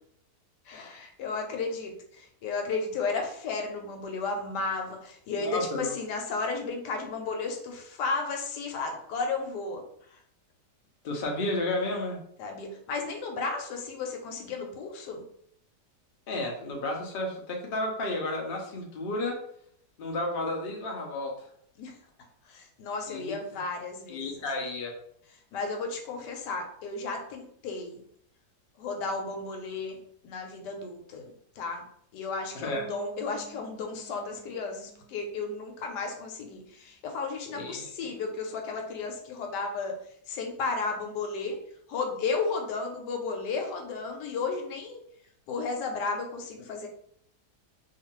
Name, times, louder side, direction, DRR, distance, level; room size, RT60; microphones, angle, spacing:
voice 1, 0.7-9.8 10.1-10.2 12.4-15.2 21.8-21.9 22.5-24.4 25.5-28.0 28.8-30.0 30.2-31.8 32.1-40.0 40.3-41.6 41.9-45.0 45.5-46.9, left 4 dB, 85° left, 3 dB, 1.2 m, -33 dB
voice 2, 5.3-5.9 11.0-12.2 16.3-19.4 20.0-21.5 23.1-23.3 24.1-24.9 32.5-32.8 37.5-37.9, left 2 dB, 65° left, 0 dB, 0.5 m, -32 dB
Bass guitar, 32.7-36.6, right 7 dB, 70° right, 1.0 m, -50 dB
2.6 x 2.4 x 2.9 m, 0.67 s
omnidirectional pair, 1.8 m